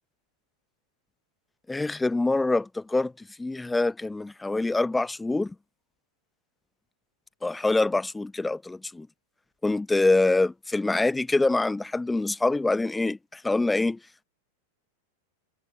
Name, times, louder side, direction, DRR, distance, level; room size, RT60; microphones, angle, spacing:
voice 1, 1.7-3.1 3.4-5.5 7.4-9.1 9.6-14.0, left 2 dB, 10° left, 0.8 m, -25 dB
figure-of-eight pair, 90°, 0 cm